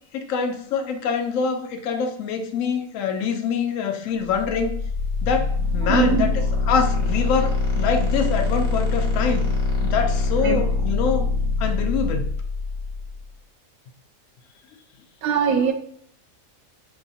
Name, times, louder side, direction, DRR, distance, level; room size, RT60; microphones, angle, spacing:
voice 1, 0.1-4.7 5.2-9.5 9.8-11.3 11.6-12.3, left 6 dB, 75° left, 5 dB, 0.9 m, -25 dB
sound 1, 4.3-13.2, left 3 dB, 90° left, 1.3 m, -24 dB
voice 2, 5.8-6.3 10.4-10.6 15.2-15.7, right 6 dB, 90° right, 6 dB, 1.0 m, -21 dB
4.8 x 2.6 x 2.7 m, 0.63 s
omnidirectional pair, 1.4 m